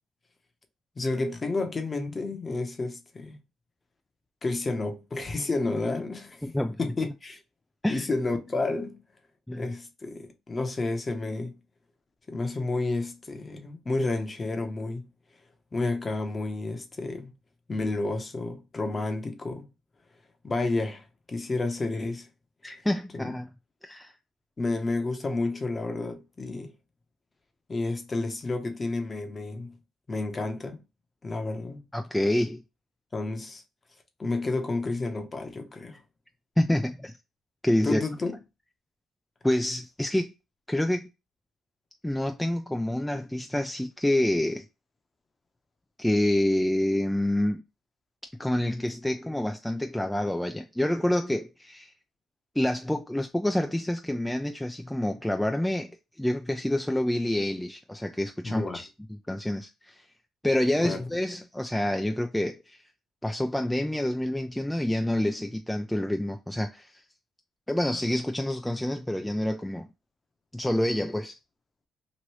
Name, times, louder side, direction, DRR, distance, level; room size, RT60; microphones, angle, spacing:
voice 1, 1.0-3.4 4.4-7.4 7.9-9.0 9.5-11.6 12.3-15.1 15.7-17.3 17.7-19.7 20.4-22.3 23.1-23.3 24.6-26.7 27.7-29.8 30.1-30.8 31.2-31.8 33.1-33.6 34.2-36.0 37.8-38.3 58.4-58.8 60.8-61.0, left 2 dB, 30° left, 0.8 m, -30 dB
voice 2, 6.4-6.8 7.8-8.1 9.5-9.7 22.6-23.5 23.8-24.1 31.9-32.6 36.6-37.2 37.6-38.0 39.4-40.3 40.7-41.1 42.0-44.6 46.0-47.6 48.4-51.9 52.6-60.1 60.4-62.8 63.2-67.0 67.7-69.9 70.5-71.4, left 1 dB, 5° left, 0.3 m, -27 dB
3.0 x 2.6 x 3.0 m
cardioid pair, 90°, 0 cm